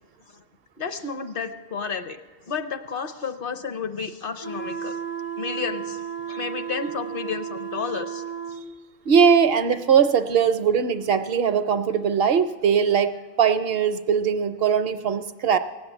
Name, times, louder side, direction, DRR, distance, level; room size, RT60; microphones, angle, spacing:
voice 1, 0.8-2.2 2.5-5.0 5.4-8.6, left 5 dB, 50° left, 9 dB, 0.9 m, -32 dB
sound 1, 4.4-8.7, right 8 dB, 15° left, 0.4 m, -33 dB
voice 2, 9.1-13.1 13.4-15.6, right 7 dB, 60° right, 11 dB, 0.7 m, -20 dB
17.5 x 7.3 x 9.0 m, 1.3 s
omnidirectional pair, 1.3 m